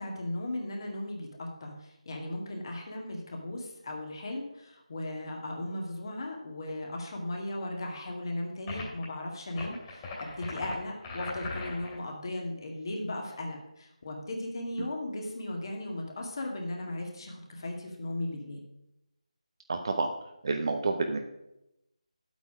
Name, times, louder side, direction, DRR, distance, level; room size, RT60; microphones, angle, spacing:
voice 1, 0.0-18.6, left 1 dB, 40° left, 1 dB, 2.1 m, -37 dB
sound 1, 8.7-9.1 9.5-12.0, left 3 dB, 15° left, 2.7 m, -39 dB
voice 2, 19.7-20.1 20.4-21.2, right 3 dB, 40° right, 4 dB, 0.9 m, -29 dB
9.9 x 8.2 x 5.0 m, 0.86 s
figure-of-eight pair, 160°, 4 cm